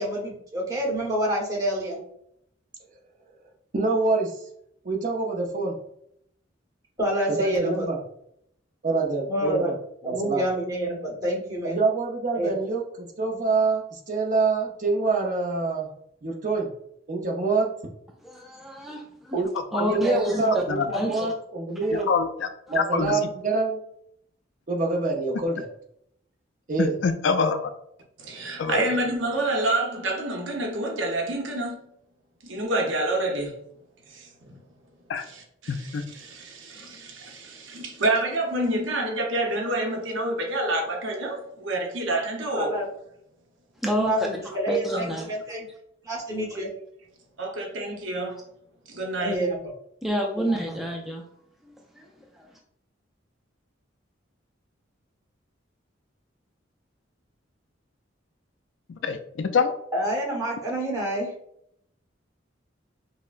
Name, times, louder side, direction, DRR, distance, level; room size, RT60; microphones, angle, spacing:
voice 1, 0.0-2.0 7.0-7.9 9.3-9.7 10.0-11.8 12.3-12.5 42.5-42.8 43.9-45.7 46.0-46.7 49.2-49.6 50.4-50.6 59.9-61.3, right 1 dB, 20° right, 1.1 m, -28 dB
voice 2, 3.7-4.4 4.8-5.8 7.3-8.0 8.8-9.7 10.0-10.5 11.6-15.9 16.2-16.7 17.1-17.7 19.3-19.5 19.8-22.1 22.7-23.8 24.7-25.7 26.7-26.9, right 3 dB, 45° right, 0.7 m, -25 dB
voice 3, 18.2-19.4 19.7-20.6 20.9-21.3 43.8-45.3 50.0-51.2 51.7-52.1 52.4-52.5, equal, ahead, 0.4 m, -29 dB
voice 4, 20.7-21.0 22.1-22.5 22.7-23.2 26.8-27.7 28.6-28.9 35.1-35.3 35.7-36.0 59.0-59.7, left 5 dB, 70° left, 0.4 m, -25 dB
voice 5, 28.2-31.8 32.4-33.5 34.0-34.6 35.2-42.8 44.9-45.1 47.4-48.4 48.9-49.3, right 1 dB, 80° right, 0.8 m, -28 dB
5.5 x 2.1 x 2.5 m
head